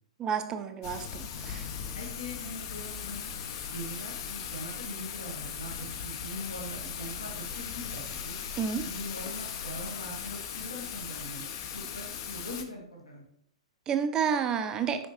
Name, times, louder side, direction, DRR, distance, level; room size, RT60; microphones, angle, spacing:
voice 1, 0.2-1.7 8.6-8.8 13.9-15.0, right 7 dB, 20° right, 8 dB, 0.5 m, -30 dB
Thunder / Rain, 0.8-12.6, left 7 dB, 40° left, 0.7 m, -38 dB
voice 2, 1.9-3.3 3.6-8.3 8.8-13.2, left 1 dB, 75° left, -2 dB, 1.7 m, -42 dB
6.2 x 5.1 x 3.2 m, 0.69 s
figure-of-eight pair, 110°, 3 cm